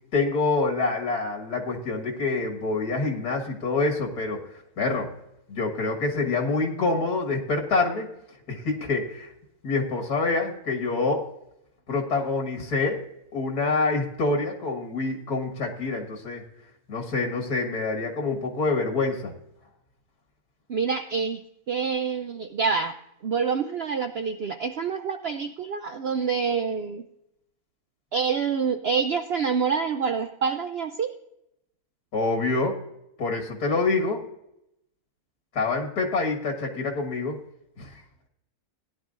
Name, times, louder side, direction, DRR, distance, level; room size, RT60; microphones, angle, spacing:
voice 1, 0.1-4.4 4.8-5.1 5.5-8.1 8.5-9.3 9.6-11.3 11.9-13.0 13.3-16.4 16.9-19.3 32.1-32.8 33.2-34.2 35.5-37.4 37.8-38.0, left 3 dB, 80° left, 1 dB, 2.2 m, -26 dB
voice 2, 20.7-23.0 23.2-27.0 28.1-31.1, right 6 dB, 60° right, 7 dB, 0.6 m, -27 dB
17.0 x 11.0 x 2.5 m, 0.82 s
omnidirectional pair, 1.6 m